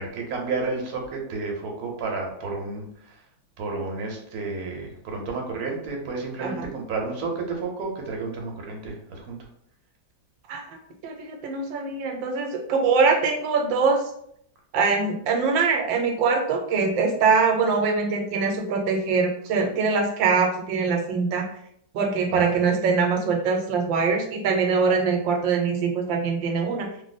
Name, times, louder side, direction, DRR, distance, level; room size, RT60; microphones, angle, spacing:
voice 1, 0.0-3.2 3.6-9.5 22.3-22.5, right 3 dB, 60° right, 1 dB, 1.1 m, -31 dB
voice 2, 11.0-14.0 14.7-21.5 21.9-26.9, right 5 dB, 85° right, 3 dB, 1.3 m, -23 dB
3.2 x 2.0 x 3.9 m, 0.69 s
omnidirectional pair, 2.0 m